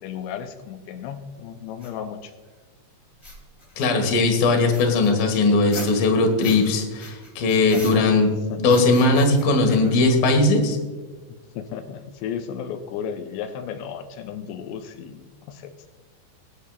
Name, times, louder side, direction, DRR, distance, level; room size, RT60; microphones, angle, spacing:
voice 1, 0.0-2.3 7.7-8.1 8.5-8.7 11.6-15.2 15.5-15.9, left 8 dB, 90° left, 5 dB, 2.9 m, -34 dB
sound 1, 1.8-1.9 3.1-4.1 4.7-6.7 7.0-8.3 8.7-10.2, equal, 15° left, 1.1 m, -40 dB
voice 2, 3.8-8.3 8.6-10.8, left 3 dB, 60° left, 3 dB, 3.1 m, -19 dB
22.5 x 8.4 x 2.4 m, 1.3 s
omnidirectional pair, 5.0 m